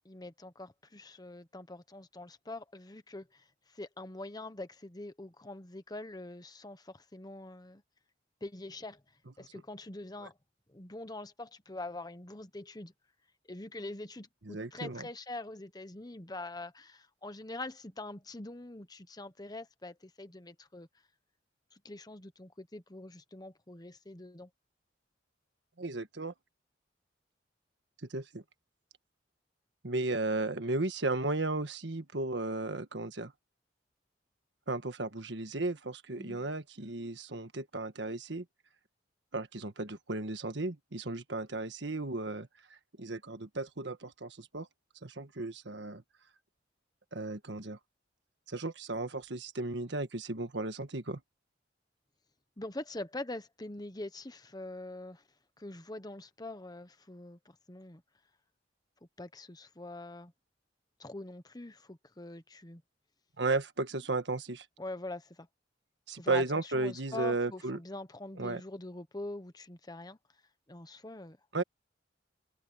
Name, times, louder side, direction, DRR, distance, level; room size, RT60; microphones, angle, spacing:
voice 1, 0.0-7.8 8.4-9.0 9.4-10.3 10.7-12.9 13.5-20.9 21.7-24.5 36.2-36.5 52.6-55.2 55.6-58.0 59.2-60.3 61.0-62.8 64.8-65.5 66.1-70.2 70.7-71.4, left 2 dB, 20° left, 1.1 m, -44 dB
voice 2, 14.4-15.1 25.8-26.3 28.1-28.4 29.8-33.3 34.7-38.4 39.3-42.5 43.0-44.7 45.0-46.0 47.1-47.8 48.5-51.2 63.4-64.6 66.1-67.8 68.4-68.6 71.5-71.6, right 2 dB, 70° right, 1.6 m, -34 dB
open air
head